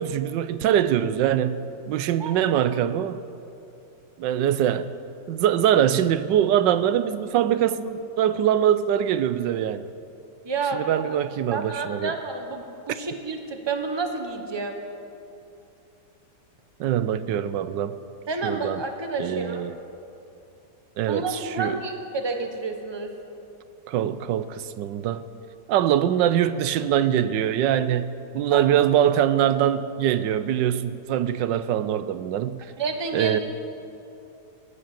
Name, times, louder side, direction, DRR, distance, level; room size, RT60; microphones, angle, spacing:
voice 1, 0.0-3.2 4.2-4.9 5.3-9.9 10.7-12.1 16.8-17.9 18.4-18.8 19.2-19.7 21.0-21.8 23.9-25.2 25.7-32.6 33.1-33.4, right 10 dB, 85° right, 1.3 m, -23 dB
voice 2, 10.4-11.0 11.5-14.8 18.3-19.7 21.1-23.1 28.5-28.6 32.8-33.4, right 4 dB, 20° right, 1.0 m, -30 dB
19.0 x 10.0 x 7.5 m
omnidirectional pair, 1.9 m